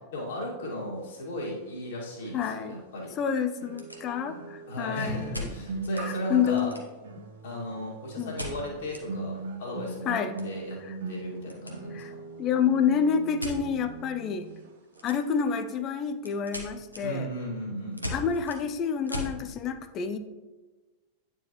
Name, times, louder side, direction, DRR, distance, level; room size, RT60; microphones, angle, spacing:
voice 1, 0.1-3.1 4.7-6.7 7.4-10.8 11.1-12.0 17.0-18.2, equal, 60° left, -3 dB, 2.0 m, -35 dB
sound 1, 2.2-2.3 3.6-14.7 15.0-15.2, right 3 dB, 60° right, 1.0 m, -40 dB
voice 2, 2.3-2.8 3.2-5.5 6.0-6.8 7.2-7.3 8.2-8.4 10.1-10.4 10.9-11.0 11.9-12.1 12.4-14.5 15.0-17.3 18.1-20.2, left 7 dB, 35° left, 10 dB, 0.4 m, -28 dB
sound 2, 3.6-4.5 5.3-6.1 6.4-7.2 8.4-9.1 9.4-9.5 9.8-11.8 12.0-12.4 13.4-13.6 14.9-15.5 15.8-19.4, left 1 dB, 90° left, 0.9 m, -39 dB
9.3 x 4.5 x 3.0 m, 1.2 s
figure-of-eight pair, 90°, 0 cm